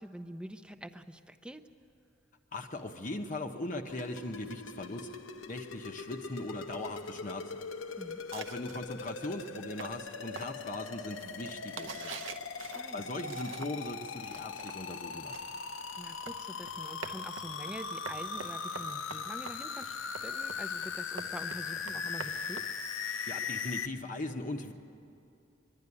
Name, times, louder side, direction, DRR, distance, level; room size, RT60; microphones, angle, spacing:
voice 1, 0.0-1.7 8.0-8.2 12.7-13.1 16.0-20.0 20.2-22.7, right 1 dB, 5° right, 8 dB, 0.6 m, -45 dB
voice 2, 2.5-5.1 5.5-7.5 8.3-12.2 12.6-15.4 23.3-24.7, left 2 dB, 40° left, 3 dB, 0.9 m, -39 dB
sound 1, 3.9-23.9, left 5 dB, 85° left, 0.8 m, -40 dB
sound 2, 8.3-14.0 14.2-23.3, right 5 dB, 70° right, 0.8 m, -47 dB
23.0 x 11.5 x 9.7 m, 2.7 s
head